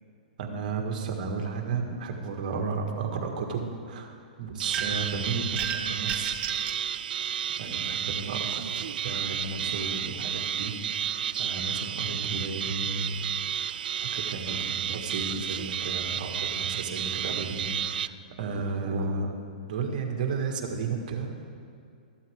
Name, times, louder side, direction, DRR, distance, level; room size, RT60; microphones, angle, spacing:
voice 1, 0.4-6.3 7.6-13.3 13.5-19.4 19.7-21.3, right 4 dB, 55° right, 2 dB, 1.8 m, -33 dB
sound 1, 4.6-18.1, right 9 dB, 75° right, 0.3 m, -32 dB
sound 2, 4.7-5.1 5.6-6.8, right 8 dB, 25° right, 0.7 m, -33 dB
14.5 x 12.0 x 3.7 m, 2.5 s
hypercardioid pair, 145°, 5 cm